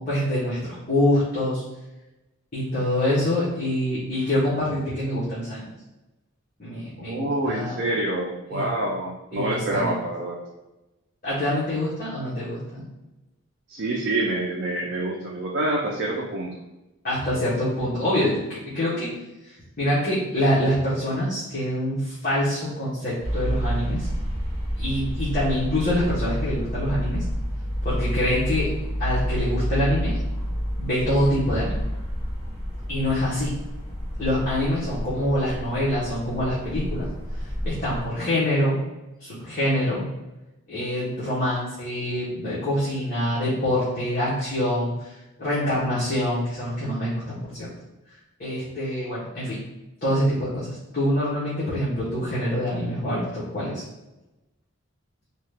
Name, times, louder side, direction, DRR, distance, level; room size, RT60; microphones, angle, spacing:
voice 1, 0.0-1.6 2.5-5.6 6.6-7.8 8.5-8.7 9.3-9.9 11.2-12.9 17.0-19.1 19.5-24.1 24.8-27.2 27.8-28.7 29.0-30.2 30.8-31.8 32.9-33.5 34.2-37.1 37.6-38.8 39.2-40.0 40.7-47.7 48.4-49.6 50.0-53.8, left 1 dB, 40° left, -10 dB, 0.9 m, -25 dB
voice 2, 7.0-10.4 13.7-16.5 17.3-17.4, right 1 dB, 55° right, -3 dB, 0.4 m, -27 dB
sound 1, 23.2-38.0, equal, 25° right, 0.8 m, -29 dB
2.8 x 2.3 x 3.3 m, 1.0 s
head